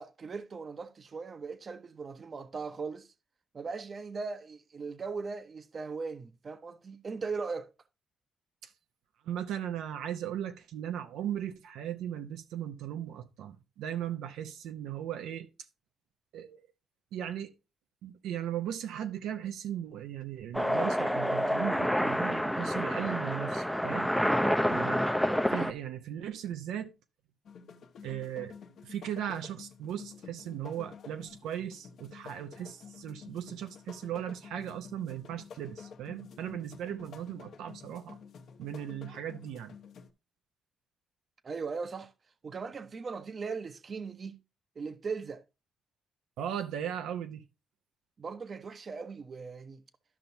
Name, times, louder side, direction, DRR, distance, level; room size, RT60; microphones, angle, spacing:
voice 1, 0.0-3.1 3.5-7.7 41.4-42.1 42.4-44.4 44.8-45.4 48.2-49.8, right 4 dB, 40° right, 0.7 m, -39 dB
voice 2, 9.2-15.5 16.3-16.7 17.1-17.5 18.0-24.1 24.7-25.1 25.5-26.9 28.0-28.5 28.8-38.2 38.6-39.7 46.4-47.4, right 10 dB, 85° right, 0.6 m, -37 dB
sound 1, 20.5-25.7, equal, ahead, 0.5 m, -28 dB
sound 2, 27.5-40.1, left 6 dB, 65° left, 1.0 m, -50 dB
12.0 x 5.6 x 2.6 m
cardioid pair, 90°, 0 cm